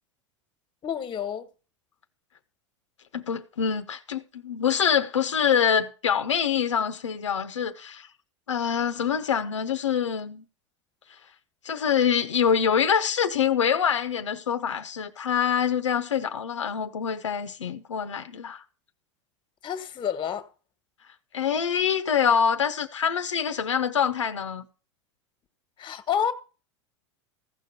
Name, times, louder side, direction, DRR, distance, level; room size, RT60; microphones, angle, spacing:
voice 1, 0.8-1.5 19.6-20.5 25.8-26.3, left 8 dB, 30° left, 1.5 m, -29 dB
voice 2, 3.1-8.1 8.5-10.4 11.6-18.6 21.3-24.6, left 7 dB, 85° left, 0.8 m, -25 dB
15.0 x 5.1 x 6.7 m
hypercardioid pair, 90°, 15 cm